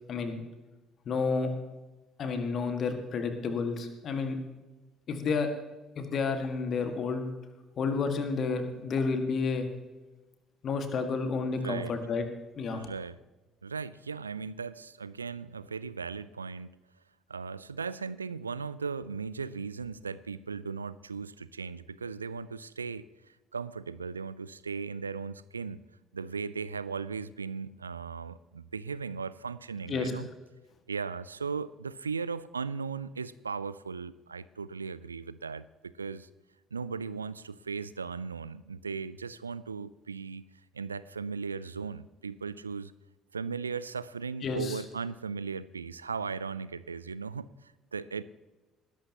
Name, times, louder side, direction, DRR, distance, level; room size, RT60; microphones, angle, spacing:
voice 1, 0.1-0.4 1.0-1.5 2.2-4.4 5.1-5.5 5.9-7.3 7.8-9.7 10.6-12.2 12.5-12.8 29.9-30.1 44.4-44.8, left 4 dB, 45° left, 7 dB, 1.7 m, -30 dB
voice 2, 11.6-11.9 12.7-13.2 13.6-16.8 17.3-25.8 26.1-30.3 30.9-36.3 36.7-40.4 40.7-42.9 43.3-48.2, right 5 dB, 85° right, 17 dB, 0.3 m, -37 dB
20.0 x 11.5 x 2.9 m, 1.2 s
figure-of-eight pair, 50°, 0 cm